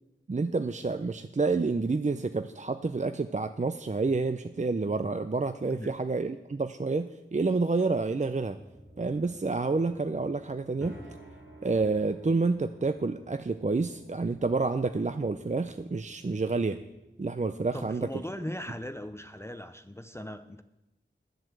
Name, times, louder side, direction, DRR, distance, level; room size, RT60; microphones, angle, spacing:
voice 1, 0.3-8.6 9.0-11.0 11.6-16.8 17.2-18.1, right 3 dB, 35° right, 9 dB, 0.5 m, -29 dB
sound 1, 8.6-19.5, right 1 dB, 80° right, 3.0 m, -53 dB
voice 2, 17.7-20.6, left 1 dB, 15° left, 9 dB, 0.6 m, -39 dB
11.0 x 7.8 x 7.8 m, 0.96 s
wide cardioid pair, 50°, 20 cm